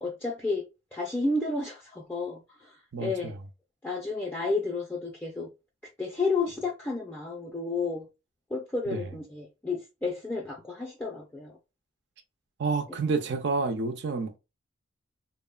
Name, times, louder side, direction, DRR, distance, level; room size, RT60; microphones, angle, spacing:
voice 1, 0.0-0.6 0.9-3.3 3.8-5.5 6.0-8.1 8.5-11.6 12.9-13.0, left 3 dB, 10° left, 0.4 m, -31 dB
voice 2, 2.9-3.3 8.9-9.0 12.6-14.4, right 4 dB, 55° right, 0.4 m, -29 dB
3.0 x 2.0 x 2.2 m
head